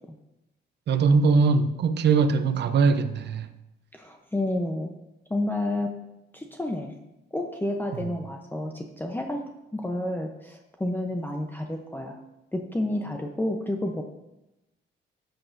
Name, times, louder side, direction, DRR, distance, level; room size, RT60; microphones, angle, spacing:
voice 1, 0.9-3.5 8.0-8.1, right 4 dB, 60° right, 0.7 m, -21 dB
voice 2, 3.9-4.9 5.3-6.0 6.3-7.0 7.3-9.5 9.7-12.2 12.5-14.0, left 1 dB, 10° left, 0.8 m, -30 dB
12.0 x 8.2 x 2.7 m
cardioid pair, 90°, 20 cm